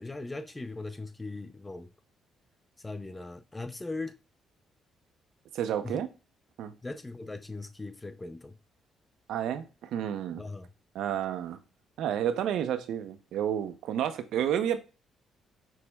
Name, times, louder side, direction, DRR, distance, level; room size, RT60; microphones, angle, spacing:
voice 1, 0.0-1.9 2.8-4.2 5.8-6.0 6.8-8.6 10.4-10.7, left 2 dB, 15° left, 0.5 m, -39 dB
voice 2, 5.5-6.1 6.6-6.7 9.3-10.4 10.9-11.6 12.0-14.8, right 9 dB, 80° right, 0.5 m, -30 dB
6.0 x 2.0 x 3.4 m
cardioid pair, 90°, 0 cm